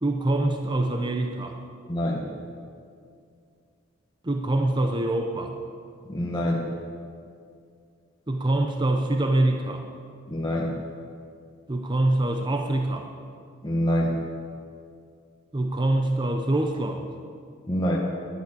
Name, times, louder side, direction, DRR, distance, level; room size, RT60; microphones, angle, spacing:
voice 1, 0.0-1.6 4.2-5.6 8.3-9.9 11.7-13.1 15.5-17.1, right 1 dB, 20° right, 4 dB, 0.7 m, -25 dB
voice 2, 1.9-2.2 6.1-6.6 10.3-10.7 13.6-14.2 17.7-18.0, equal, 20° left, -3 dB, 1.2 m, -25 dB
11.5 x 10.0 x 8.4 m, 2.3 s
head